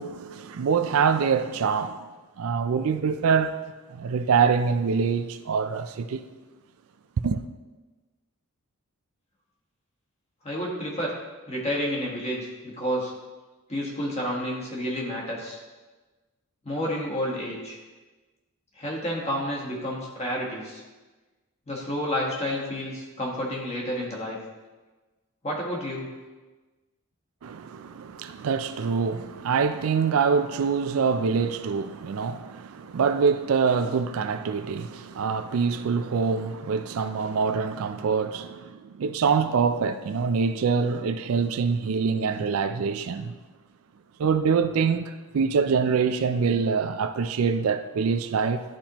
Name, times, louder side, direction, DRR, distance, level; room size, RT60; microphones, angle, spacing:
voice 1, 0.0-2.1 2.4-3.6 3.9-6.2 7.2-7.4 27.4-43.4 44.2-48.6, right 5 dB, 70° right, 0.4 m, -25 dB
voice 2, 10.4-11.1 11.5-13.1 13.7-15.6 16.6-17.8 18.8-20.8 21.7-24.4 25.4-26.1, equal, 30° left, 1.4 m, -30 dB
11.5 x 4.3 x 2.9 m
head